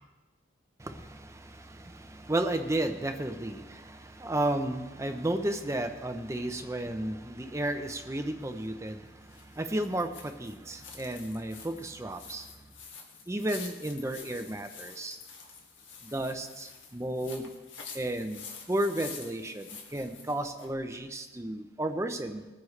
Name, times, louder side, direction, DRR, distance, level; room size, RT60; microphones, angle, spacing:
voice 1, 0.8-12.5 13.3-15.2 16.0-17.5 17.9-22.5, right 1 dB, 15° right, 6 dB, 0.6 m, -33 dB
sound 1, 8.4-20.7, left 5 dB, 80° left, 2.0 m, -48 dB
20.5 x 9.6 x 3.2 m, 1.2 s
head